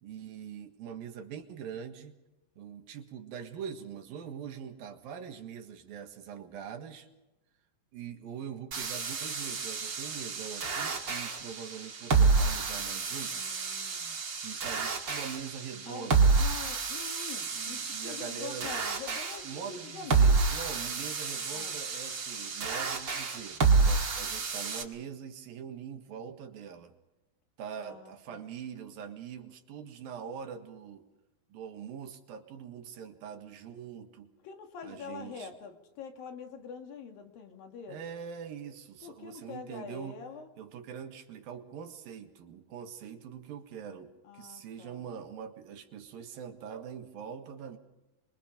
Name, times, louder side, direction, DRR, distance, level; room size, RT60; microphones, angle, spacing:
voice 1, 0.0-2.2 2.6-7.1 7.9-13.4 14.4-16.3 17.5-18.7 19.4-26.9 27.6-31.1 31.5-34.3 34.8-35.6 37.9-40.2 40.6-47.8, right 7 dB, 80° right, 6 dB, 3.4 m, -43 dB
sound 1, 8.7-24.8, right 4 dB, 40° right, 2.2 m, -29 dB
voice 2, 13.3-14.2 15.9-16.1 16.4-20.3 21.5-21.8 27.8-28.5 34.4-38.1 39.0-40.5 44.3-45.1, left 6 dB, 75° left, 5 dB, 3.8 m, -45 dB
26.0 x 23.0 x 5.2 m, 1.0 s
omnidirectional pair, 4.1 m